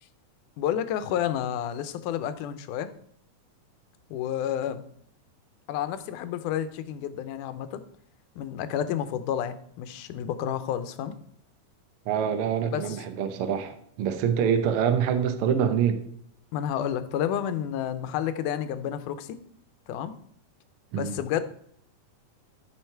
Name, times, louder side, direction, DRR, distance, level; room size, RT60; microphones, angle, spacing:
voice 1, 0.6-2.9 4.1-4.9 5.7-7.8 8.4-11.1 12.7-13.0 16.5-19.4 19.9-20.1 20.9-21.4, left 10 dB, 80° left, 2.2 m, -30 dB
voice 2, 12.1-16.0 20.9-21.2, right 8 dB, 75° right, 1.3 m, -25 dB
13.0 x 5.0 x 4.5 m
omnidirectional pair, 3.6 m